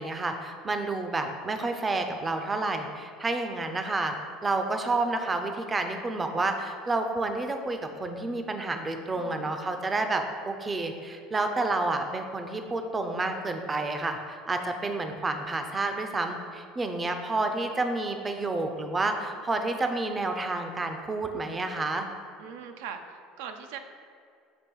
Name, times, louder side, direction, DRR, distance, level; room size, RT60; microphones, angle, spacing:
voice 1, 0.0-4.1 4.4-22.1, right 2 dB, 20° right, 6 dB, 0.4 m, -30 dB
voice 2, 9.1-9.5 22.4-23.8, right 7 dB, 85° right, 6 dB, 0.4 m, -41 dB
7.0 x 3.0 x 4.5 m, 2.3 s
cardioid pair, 135°, 0 cm